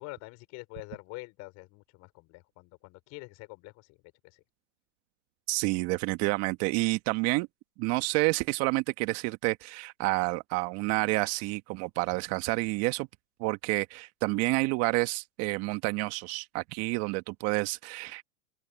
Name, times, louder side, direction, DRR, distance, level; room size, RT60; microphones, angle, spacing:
voice 1, 0.0-4.0 4.2-4.4, left 24 dB, 40° left, 5.7 m, -46 dB
voice 2, 5.5-7.5 7.8-13.1 13.4-18.2, right 24 dB, 35° right, 1.5 m, -29 dB
open air
hypercardioid pair, 125°, 43 cm